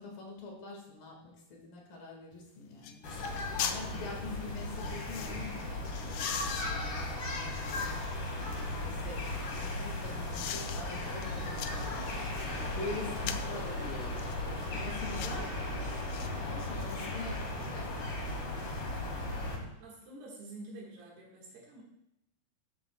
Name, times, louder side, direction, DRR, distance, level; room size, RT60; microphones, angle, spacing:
voice 1, 0.0-8.0 8.4-12.0 12.3-14.2 14.6-15.6 16.4-18.7 19.1-19.7, left 3 dB, 60° left, 0 dB, 3.5 m, -45 dB
sound 1, 2.3-2.4 2.8-3.0 3.2-3.8 4.6-5.4 5.9-8.2 8.7-9.8 10.3-10.8 11.2-12.5 13.2-13.6 14.2-14.4 15.0-15.4 16.1-16.3 16.6-17.5 17.8-17.9, left 10 dB, 85° left, 1.9 m, -41 dB
sound 2, 3.0-19.6, left 2 dB, 45° left, 2.4 m, -36 dB
voice 2, 19.8-21.8, right 2 dB, 75° right, -3 dB, 3.8 m, -48 dB
14.5 x 11.5 x 2.3 m, 0.84 s
omnidirectional pair, 4.6 m